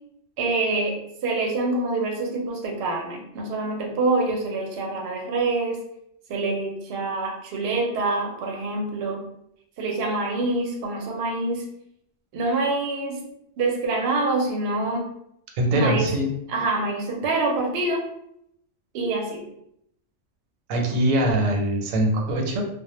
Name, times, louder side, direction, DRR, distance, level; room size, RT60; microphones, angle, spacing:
voice 1, 0.4-5.8 6.3-9.2 9.8-11.6 12.3-13.2 13.6-15.1 15.7-16.1 16.5-18.0 18.9-19.4, right 2 dB, 65° right, 1 dB, 0.7 m, -26 dB
voice 2, 15.6-16.3 20.7-22.6, right 1 dB, 85° right, 1 dB, 1.0 m, -22 dB
2.1 x 2.1 x 2.9 m, 0.75 s
omnidirectional pair, 1.3 m